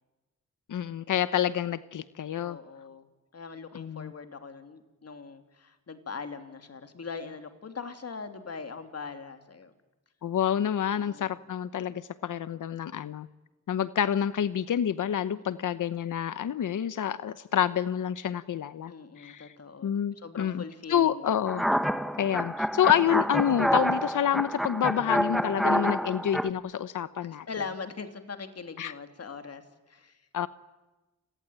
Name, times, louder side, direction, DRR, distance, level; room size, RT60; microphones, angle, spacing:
voice 1, 0.7-2.6 3.7-4.1 10.2-13.3 13.7-19.5 19.8-20.6 20.9-21.6 22.2-27.5 28.8-28.9 30.3-30.5, left 9 dB, 85° left, 14 dB, 0.9 m, -28 dB
voice 2, 2.4-3.1 3.3-9.7 10.9-11.3 15.3-15.9 18.9-21.4 27.5-30.2, left 5 dB, 55° left, 8 dB, 3.1 m, -41 dB
sound 1, 21.5-26.5, equal, ahead, 1.2 m, -28 dB
29.5 x 22.0 x 8.9 m, 1.1 s
cardioid pair, 90°, 31 cm